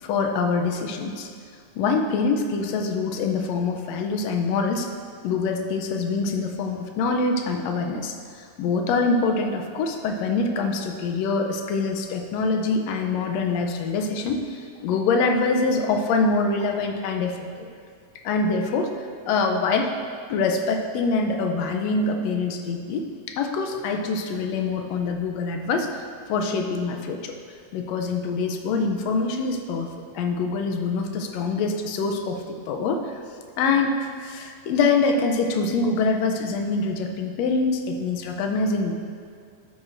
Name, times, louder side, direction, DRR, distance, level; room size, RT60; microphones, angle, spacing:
voice 1, 0.0-1.3 1.7-4.9 5.2-17.5 18.2-18.9 19.3-19.9 20.3-27.3 27.7-29.9 30.1-33.2 33.6-38.9, left 4 dB, 75° left, 4 dB, 1.8 m, -25 dB
12.0 x 8.8 x 2.6 m, 2.2 s
omnidirectional pair, 3.3 m